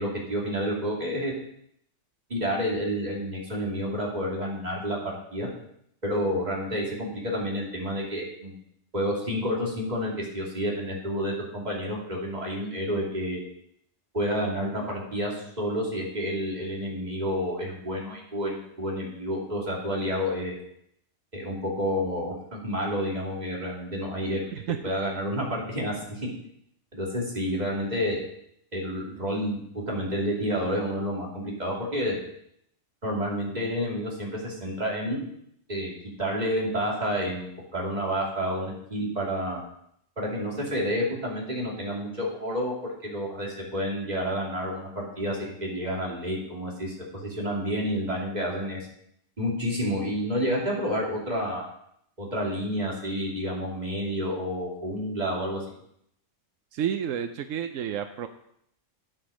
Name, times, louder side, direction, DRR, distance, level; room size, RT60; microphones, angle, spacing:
voice 1, 0.0-1.3 2.3-5.0 5.3-5.5 6.0-8.6 8.9-13.4 14.1-20.6 21.3-24.4 24.8-26.3 26.9-28.2 28.7-32.2 33.0-35.2 35.7-35.9 36.2-39.6 40.2-48.9 49.4-51.7 52.2-55.6, equal, 35° right, -3 dB, 3.0 m, -29 dB
voice 2, 56.7-58.3, right 9 dB, 85° right, 8 dB, 1.0 m, -30 dB
8.7 x 8.0 x 6.3 m, 0.72 s
omnidirectional pair, 1.3 m